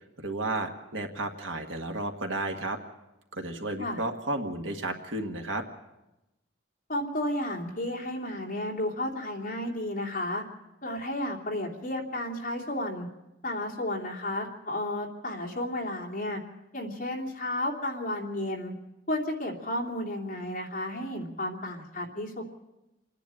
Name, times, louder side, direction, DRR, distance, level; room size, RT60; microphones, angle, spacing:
voice 1, 0.0-2.8 3.3-5.6, right 2 dB, 75° right, 4 dB, 1.7 m, -33 dB
voice 2, 6.9-10.4 10.8-13.1 13.4-16.4 16.7-18.7 19.1-22.4, left 1 dB, 40° left, -1 dB, 2.9 m, -32 dB
28.0 x 10.5 x 8.9 m, 0.97 s
head